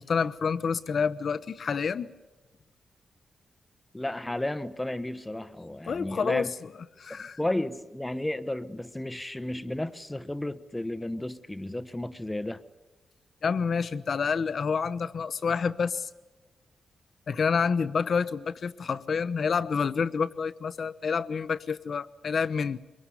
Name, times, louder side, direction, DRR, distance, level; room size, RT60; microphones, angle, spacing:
voice 1, 0.0-2.1 5.9-6.5 7.0-7.4 13.4-16.1 17.3-22.8, left 5 dB, 55° left, 0.9 m, -28 dB
voice 2, 3.9-6.6 7.1-12.6, left 1 dB, 10° left, 1.0 m, -33 dB
23.0 x 23.0 x 9.8 m
wide cardioid pair, 125°, 0 cm